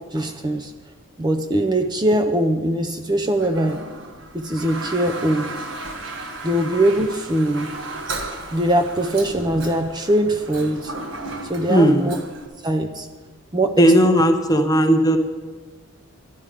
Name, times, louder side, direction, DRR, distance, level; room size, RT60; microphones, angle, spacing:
voice 1, 0.1-0.7 1.2-3.8 4.3-5.5 6.4-7.7 8.5-10.9 11.4-12.2 12.6-13.1 13.5-14.2, right 1 dB, 20° right, 6 dB, 0.5 m, -21 dB
Toilet flush, 3.3-12.5, right 2 dB, 60° right, 1.3 m, -34 dB
voice 2, 11.7-12.2 13.8-15.2, right 1 dB, 15° left, 6 dB, 0.7 m, -16 dB
11.0 x 10.5 x 4.9 m, 1.3 s
head